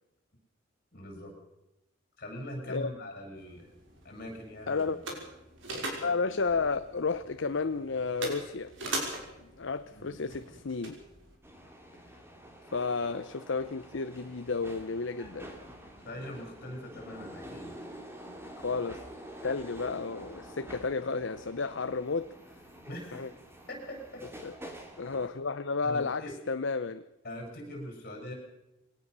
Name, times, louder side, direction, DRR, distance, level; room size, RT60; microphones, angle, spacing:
voice 1, 0.9-1.3 2.2-3.7 4.0-5.0 9.9-10.2 16.0-17.9 22.9-23.3 23.7-24.2 25.8-26.3 27.2-28.3, left 1 dB, 45° left, 7.9 m, -42 dB
sound 1, 3.4-11.4, right 2 dB, 70° right, 5.6 m, -41 dB
voice 2, 4.7-5.0 6.0-8.7 9.4-11.0 12.7-15.6 18.6-19.0 19.4-22.3 23.1-23.3 24.4-24.5 25.0-27.0, left 4 dB, 65° left, 0.7 m, -32 dB
sound 2, 11.4-25.3, right 1 dB, 10° right, 2.8 m, -48 dB
22.5 x 18.5 x 6.8 m
head